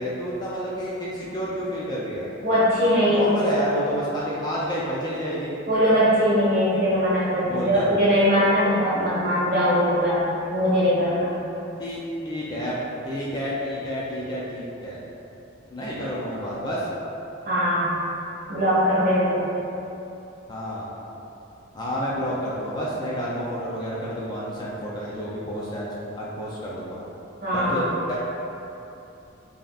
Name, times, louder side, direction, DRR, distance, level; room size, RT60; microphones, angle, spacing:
voice 1, 0.0-2.3 3.1-5.5 7.5-7.9 11.8-12.8 13.1-15.0 15.7-16.9 20.5-20.9 21.7-27.0 27.5-28.2, equal, 20° left, -6 dB, 0.4 m, -29 dB
voice 2, 2.4-3.2 5.7-10.2 10.5-11.3 17.4-17.9 18.5-19.5 27.4-27.8, equal, 50° right, -11 dB, 1.5 m, -21 dB
5.0 x 2.8 x 2.4 m, 2.9 s
head